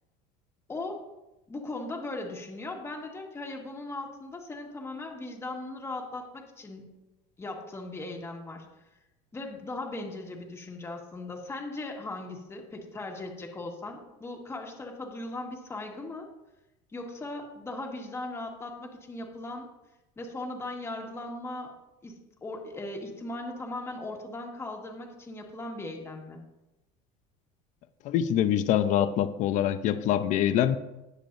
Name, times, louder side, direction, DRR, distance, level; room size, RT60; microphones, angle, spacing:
voice 1, 0.7-1.0 1.5-7.0 7.4-8.7 9.3-16.3 16.9-19.7 20.2-21.7 22.0-26.4, left 2 dB, 15° left, 1 dB, 1.7 m, -38 dB
voice 2, 28.0-30.8, left 10 dB, 50° left, 11 dB, 0.7 m, -25 dB
19.5 x 6.7 x 2.7 m, 0.97 s
cardioid pair, 130°, 16 cm